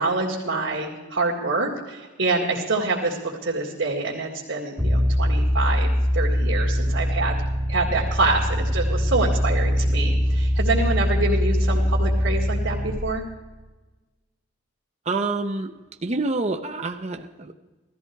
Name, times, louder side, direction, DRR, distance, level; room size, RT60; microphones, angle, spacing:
voice 1, 0.0-7.4 7.7-13.2, right 3 dB, 80° right, -4 dB, 2.2 m, -26 dB
sound 1, 4.8-13.0, equal, 5° right, 2.0 m, -22 dB
voice 2, 15.1-15.7 16.0-17.5, right 3 dB, 35° right, 6 dB, 0.7 m, -27 dB
17.0 x 14.0 x 4.7 m, 1.2 s
head